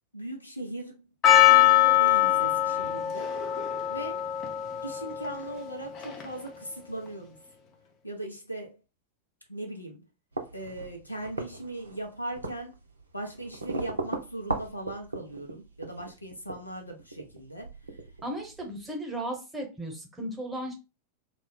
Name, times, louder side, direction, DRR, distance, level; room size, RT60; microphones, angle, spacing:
voice 1, 0.1-1.1 1.5-3.3 3.9-4.2 4.8-7.4 8.0-8.8 9.5-10.0 10.5-12.8 13.1-17.7, right 1 dB, 85° left, 0.7 m, -39 dB
Percussion, 1.2-6.5, left 13 dB, 35° left, 0.7 m, -23 dB
sound 1, 10.3-18.8, right 3 dB, 75° right, 0.6 m, -39 dB
voice 2, 18.2-20.7, right 1 dB, 10° right, 1.0 m, -35 dB
2.4 x 2.0 x 3.6 m
figure-of-eight pair, 90°, 0 cm